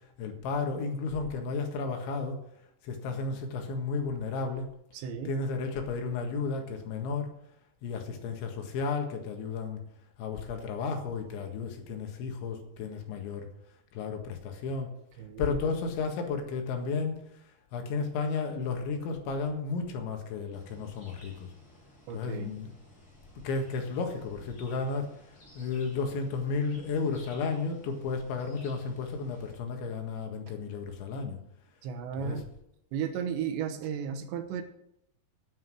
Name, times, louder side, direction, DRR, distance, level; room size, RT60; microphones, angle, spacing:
voice 1, 0.2-2.4 2.8-4.7 5.3-7.3 7.8-9.8 10.2-13.5 13.9-14.9 15.4-17.2 17.7-21.5 22.1-22.7 23.4-25.2 25.6-31.4 32.2-32.4, left 4 dB, 90° left, 4 dB, 4.1 m, -33 dB
voice 2, 4.9-5.3 15.2-15.6 22.1-22.6 31.8-32.5 32.9-34.6, right 7 dB, 80° right, 7 dB, 3.3 m, -34 dB
sound 1, 20.5-29.6, left 1 dB, 30° left, 5.8 m, -55 dB
10.0 x 9.7 x 6.2 m, 0.75 s
omnidirectional pair, 5.1 m